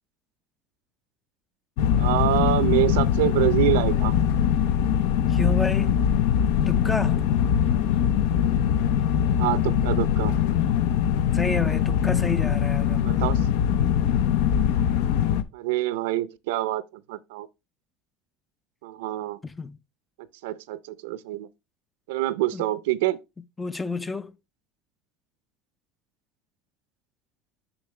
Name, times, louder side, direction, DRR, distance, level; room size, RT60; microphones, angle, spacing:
sound 1, 1.8-15.4, left 9 dB, 70° left, 0.6 m, -22 dB
voice 1, 2.0-4.1 9.4-10.3 13.0-13.4 15.5-17.5 18.8-19.4 20.4-21.5 22.1-23.2, right 15 dB, 90° right, 0.6 m, -26 dB
voice 2, 5.3-6.0 6.7-7.2 11.3-13.3 19.4-19.8 22.5-22.6 23.6-24.3, left 3 dB, 10° left, 0.4 m, -30 dB
7.0 x 6.0 x 3.2 m
cardioid pair, 150°, 0 cm